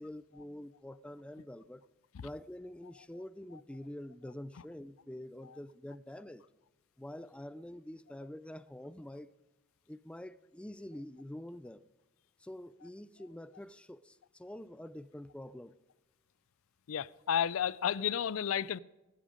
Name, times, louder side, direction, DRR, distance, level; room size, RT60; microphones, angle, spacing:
voice 1, 0.0-1.8 2.2-6.4 7.0-9.3 9.9-11.8 12.4-15.8, left 1 dB, 5° left, 0.3 m, -46 dB
voice 2, 16.9-18.8, left 8 dB, 85° left, 0.4 m, -32 dB
16.5 x 11.0 x 5.1 m
head